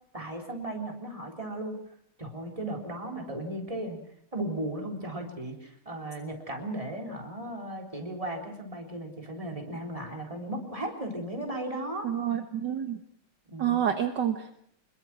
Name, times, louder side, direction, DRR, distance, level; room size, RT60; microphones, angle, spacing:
voice 1, 0.1-1.8 2.2-4.0 4.3-12.1 13.5-13.9, right 1 dB, 15° right, 2 dB, 3.9 m, -36 dB
voice 2, 12.0-13.0 13.6-14.6, right 9 dB, 60° right, 7 dB, 1.7 m, -28 dB
25.5 x 21.5 x 6.1 m, 0.67 s
omnidirectional pair, 2.3 m